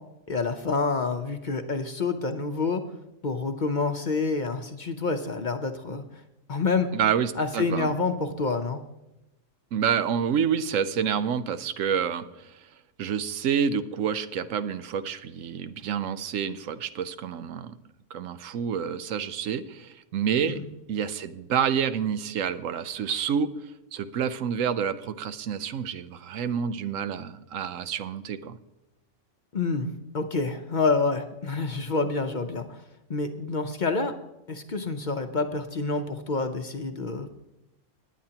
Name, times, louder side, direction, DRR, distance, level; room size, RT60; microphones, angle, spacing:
voice 1, 0.3-2.8 3.2-6.0 6.5-6.9 7.4-8.8 20.5-20.7 29.5-29.9 30.1-32.8 33.1-34.1 34.5-37.3, left 4 dB, 45° left, 7 dB, 0.7 m, -28 dB
voice 2, 6.9-7.9 9.7-12.7 13.0-17.8 18.1-20.6 20.9-23.5 23.9-28.6, right 7 dB, 80° right, 12 dB, 1.1 m, -28 dB
19.5 x 9.5 x 2.9 m, 0.93 s
omnidirectional pair, 1.3 m